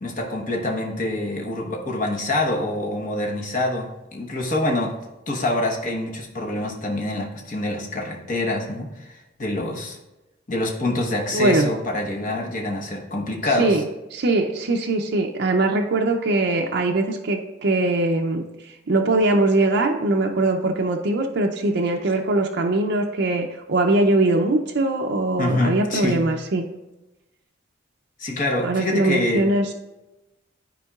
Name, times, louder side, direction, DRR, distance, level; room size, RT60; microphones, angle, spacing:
voice 1, 0.0-5.0 5.3-10.0 10.5-13.8 25.4-26.3 28.2-29.4, left 2 dB, 40° left, 0 dB, 1.1 m, -26 dB
voice 2, 11.3-11.7 13.4-26.6 28.6-29.7, right 2 dB, 55° right, 2 dB, 0.5 m, -21 dB
12.5 x 4.5 x 2.4 m, 1.0 s
head